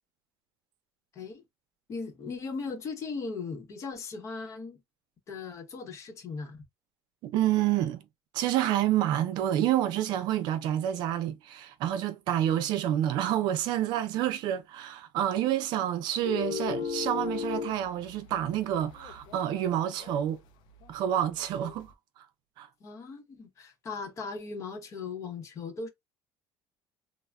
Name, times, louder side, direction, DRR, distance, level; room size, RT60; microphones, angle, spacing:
voice 1, 1.1-1.4 1.9-4.8 5.3-6.6 22.8-25.9, left 4 dB, 40° left, 0.8 m, -38 dB
voice 2, 7.2-8.0 8.3-20.4 20.9-21.9 22.6-22.7, right 11 dB, 70° right, 0.6 m, -28 dB
sound 1, 16.2-19.6 20.0-20.3 20.8-21.8, left 7 dB, 75° left, 0.5 m, -36 dB
3.3 x 2.0 x 2.3 m
cardioid pair, 135°, 8 cm